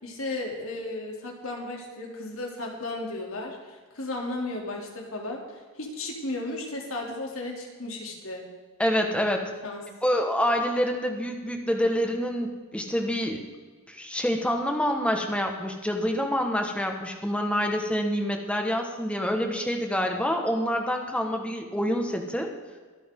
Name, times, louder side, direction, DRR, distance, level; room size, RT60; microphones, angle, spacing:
voice 1, 0.0-5.4 5.8-8.4 9.6-9.8, left 2 dB, 70° left, 0 dB, 3.1 m, -34 dB
voice 2, 8.8-9.5 10.0-13.4 13.9-22.5, equal, 5° left, 3 dB, 1.6 m, -27 dB
24.0 x 8.5 x 3.8 m, 1.4 s
head